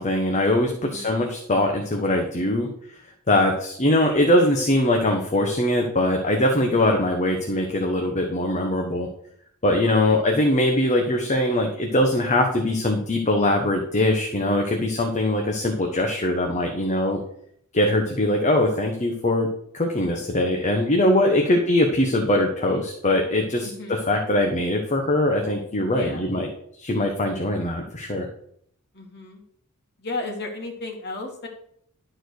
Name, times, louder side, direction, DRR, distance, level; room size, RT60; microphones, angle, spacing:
voice 1, 0.0-2.7 3.3-9.1 9.6-17.2 17.7-19.5 19.7-26.5 26.8-28.3, left 1 dB, 35° left, 2 dB, 1.1 m, -22 dB
voice 2, 0.8-1.2 9.8-10.1 21.4-21.6 23.6-24.0 25.9-26.2 28.9-29.4 30.0-31.5, left 2 dB, 50° left, 1 dB, 2.3 m, -34 dB
12.0 x 4.4 x 6.5 m, 0.69 s
head